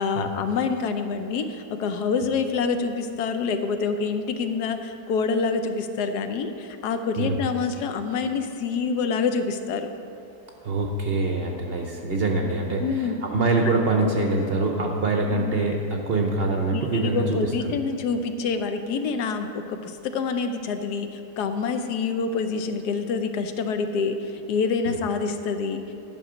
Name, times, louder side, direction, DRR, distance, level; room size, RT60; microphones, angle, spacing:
voice 1, 0.0-9.9 12.8-13.2 15.3-15.5 16.7-25.8, left 5 dB, 75° left, 8 dB, 1.1 m, -27 dB
voice 2, 10.6-15.8 16.1-17.4 17.6-17.8 24.8-24.9, right 3 dB, 50° right, 2 dB, 0.7 m, -24 dB
11.5 x 6.1 x 4.9 m, 2.7 s
omnidirectional pair, 1.8 m